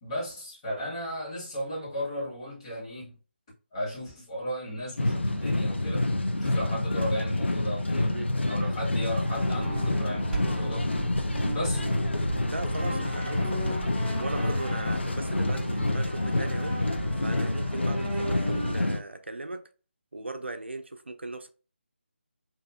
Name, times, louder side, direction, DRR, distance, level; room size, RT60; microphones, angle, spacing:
voice 1, 0.0-3.2 3.7-6.1 6.4-10.9 11.5-11.8, equal, 25° left, 1.3 m, -35 dB
sound 1, 5.0-19.0, left 2 dB, 75° left, 0.5 m, -28 dB
sound 2, 8.8-18.7, right 2 dB, ahead, 0.6 m, -37 dB
voice 2, 12.4-13.8 14.2-16.8 17.2-19.7 20.1-21.5, right 2 dB, 75° right, 0.4 m, -38 dB
2.6 x 2.6 x 2.3 m
figure-of-eight pair, 155°, 6 cm